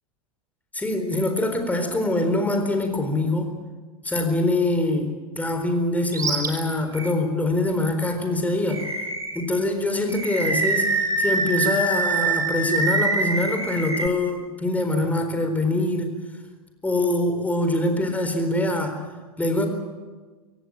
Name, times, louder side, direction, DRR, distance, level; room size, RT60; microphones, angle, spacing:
voice 1, 0.7-3.5 4.0-8.8 9.3-16.2 16.8-19.0 19.4-19.7, left 2 dB, 10° left, 6 dB, 4.2 m, -24 dB
Animal, 6.1-6.5 6.9-7.1 8.7-9.4 10.1-14.1, right 3 dB, 20° right, 3.3 m, -24 dB
24.5 x 17.0 x 9.0 m, 1.4 s
figure-of-eight pair, 90°, 19 cm